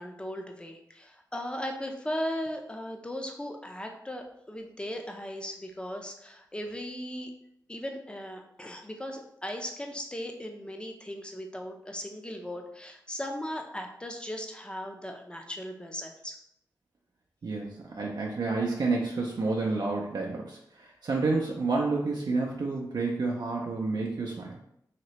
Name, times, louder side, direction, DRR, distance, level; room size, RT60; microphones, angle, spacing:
voice 1, 0.0-7.3 7.7-16.4, equal, 15° left, 3 dB, 0.6 m, -37 dB
voice 2, 17.4-24.6, right 3 dB, 65° right, -2 dB, 0.5 m, -29 dB
3.1 x 2.9 x 3.0 m, 0.75 s
cardioid pair, 55°, 7 cm